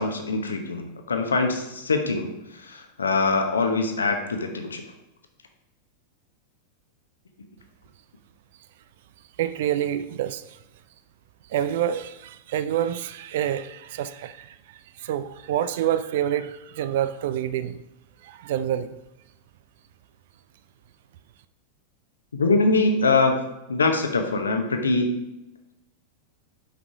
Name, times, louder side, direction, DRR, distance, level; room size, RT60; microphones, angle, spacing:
voice 1, 0.0-2.3 2.7-4.8 22.3-23.4 23.7-25.2, left 3 dB, 75° left, 5 dB, 0.9 m, -23 dB
voice 2, 9.4-10.4 11.5-17.8 18.2-18.9, right 10 dB, 55° right, 13 dB, 0.3 m, -27 dB
5.8 x 5.3 x 4.8 m, 0.92 s
figure-of-eight pair, 90°, 0 cm